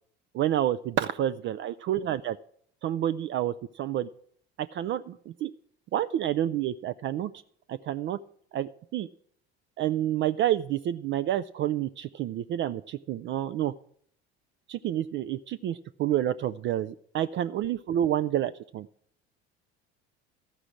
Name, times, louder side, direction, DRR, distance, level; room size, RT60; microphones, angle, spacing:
voice 1, 0.3-2.4 2.8-4.1 4.6-5.5 5.9-7.3 7.7-8.2 8.5-9.1 9.8-13.7 14.7-18.9, right 12 dB, 35° right, 12 dB, 0.4 m, -29 dB
13.0 x 5.0 x 8.2 m, 0.62 s
hypercardioid pair, 70°, 33 cm